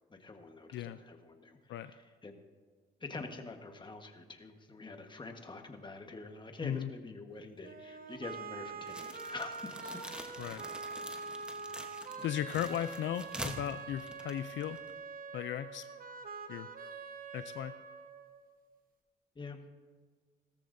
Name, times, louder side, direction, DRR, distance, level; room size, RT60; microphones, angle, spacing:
voice 1, 0.1-2.4 3.0-9.7 11.6-11.8 19.3-19.6, left 3 dB, 25° left, 4 dB, 1.4 m, -46 dB
sound 1, 7.6-18.6, right 4 dB, 45° right, 1.1 m, -45 dB
sound 2, 8.9-15.0, equal, 5° right, 1.1 m, -46 dB
voice 2, 12.2-14.8 15.3-15.9 16.5-16.7 17.3-17.7, left 11 dB, 70° left, 12 dB, 0.4 m, -36 dB
17.5 x 13.5 x 2.7 m, 1.5 s
cardioid pair, 90°, 20 cm